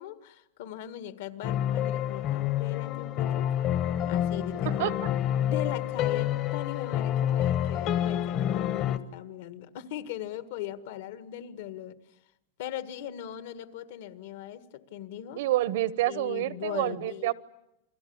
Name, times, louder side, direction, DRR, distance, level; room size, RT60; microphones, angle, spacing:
voice 1, 0.0-3.5 4.1-4.8 5.4-12.0 12.6-15.4 16.1-17.3, left 11 dB, 60° left, 12 dB, 1.7 m, -39 dB
sound 1, 1.4-9.0, left 11 dB, 30° left, 1.1 m, -28 dB
voice 2, 4.6-5.1 15.4-17.3, right 15 dB, 60° right, 18 dB, 1.0 m, -28 dB
29.0 x 23.0 x 8.7 m, 0.84 s
supercardioid pair, 165°, 0 cm